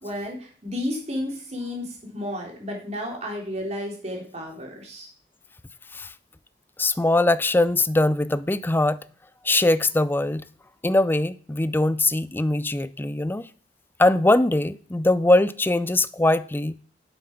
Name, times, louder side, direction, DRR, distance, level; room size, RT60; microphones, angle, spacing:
voice 1, 0.0-5.1, left 1 dB, 40° right, 3.5 m, -32 dB
voice 2, 6.8-9.0 9.4-10.4 10.8-13.5 14.0-16.8, left 2 dB, 10° left, 0.4 m, -21 dB
8.5 x 7.2 x 5.8 m
head